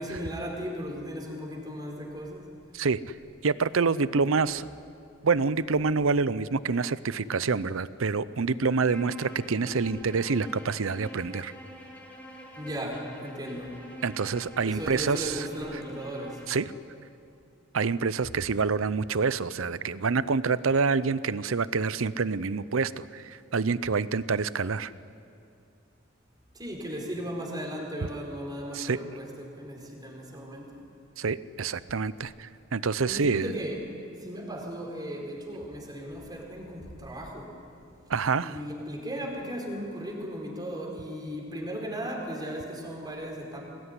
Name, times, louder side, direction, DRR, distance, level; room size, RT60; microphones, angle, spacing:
voice 1, 0.0-2.5 12.5-13.8 14.6-16.4 26.5-30.8 33.0-33.8 34.2-37.5 38.4-43.7, equal, 20° right, 0 dB, 4.7 m, -36 dB
voice 2, 3.4-4.7 5.2-11.5 14.0-15.5 16.5-16.6 17.7-24.9 28.7-29.0 31.2-33.6 38.1-38.6, right 4 dB, 75° right, 16 dB, 0.7 m, -27 dB
Bowed string instrument, 8.8-16.7, equal, 10° left, 3.0 m, -46 dB
22.0 x 19.0 x 9.9 m, 2.6 s
head